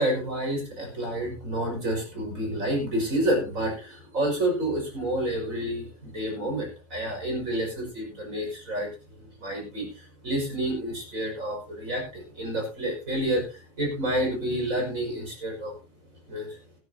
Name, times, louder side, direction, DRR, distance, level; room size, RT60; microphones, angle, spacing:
voice 1, 0.0-8.9 9.4-15.7 16.3-16.6, right 1 dB, 55° right, 1 dB, 6.4 m, -29 dB
18.5 x 12.5 x 2.8 m, 0.30 s
omnidirectional pair, 1.7 m